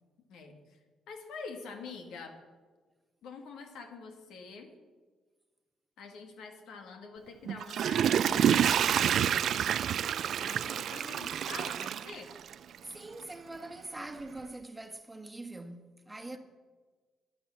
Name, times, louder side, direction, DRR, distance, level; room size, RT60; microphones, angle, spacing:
voice 1, 1.1-2.4 3.2-4.7 6.0-8.7 10.4-12.3, left 4 dB, 85° left, 2.0 m, -45 dB
Water / Toilet flush, 7.5-12.8 13.2-13.3, right 9 dB, 65° right, 0.3 m, -28 dB
voice 2, 12.8-16.4, right 2 dB, 10° right, 1.3 m, -43 dB
11.0 x 11.0 x 7.2 m
cardioid pair, 90°, 0 cm